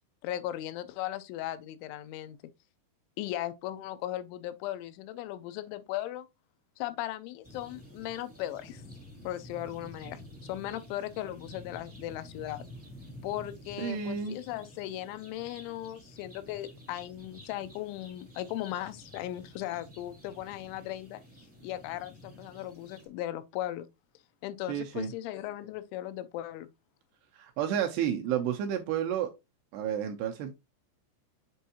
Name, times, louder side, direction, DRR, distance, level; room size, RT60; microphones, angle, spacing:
voice 1, 0.2-2.4 3.2-6.3 6.8-8.8 9.2-12.7 13.2-21.2 21.6-23.9 24.4-26.7, left 13 dB, 85° left, 3.0 m, -37 dB
sound 1, 7.4-23.1, left 1 dB, 15° right, 0.4 m, -50 dB
voice 2, 13.8-14.4 24.7-25.1 27.4-29.3 29.7-30.5, right 9 dB, 80° right, 2.4 m, -31 dB
7.7 x 4.5 x 2.8 m
omnidirectional pair, 5.3 m